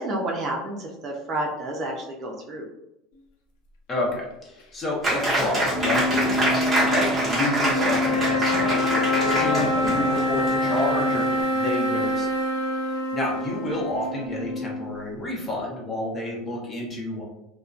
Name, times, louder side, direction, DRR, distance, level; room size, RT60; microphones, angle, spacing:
voice 1, 0.0-2.7 7.7-7.8, right 1 dB, 40° right, 0 dB, 0.5 m, -30 dB
voice 2, 3.9-12.3 12.9-17.2, left 2 dB, 25° left, -3 dB, 0.8 m, -30 dB
Applause, 5.0-11.4, right 1 dB, 15° right, 1.0 m, -25 dB
sound 1, 5.7-15.1, left 1 dB, 75° left, 0.5 m, -26 dB
2.6 x 2.1 x 2.4 m, 0.86 s
supercardioid pair, 115°, 0 cm